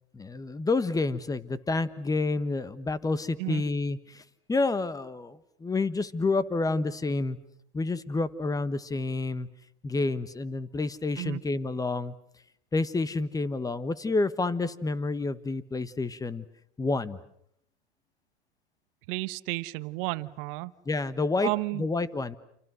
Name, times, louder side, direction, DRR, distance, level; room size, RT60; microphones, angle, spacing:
voice 1, 0.1-4.2 4.5-7.4 7.7-9.5 9.8-12.1 12.7-16.4 16.8-17.2 20.9-22.4, left 3 dB, 10° left, 16 dB, 1.3 m, -29 dB
voice 2, 19.1-20.7 21.4-21.8, right 23 dB, 55° right, 14 dB, 1.2 m, -32 dB
29.0 x 28.0 x 6.4 m, 0.71 s
hypercardioid pair, 115°, 34 cm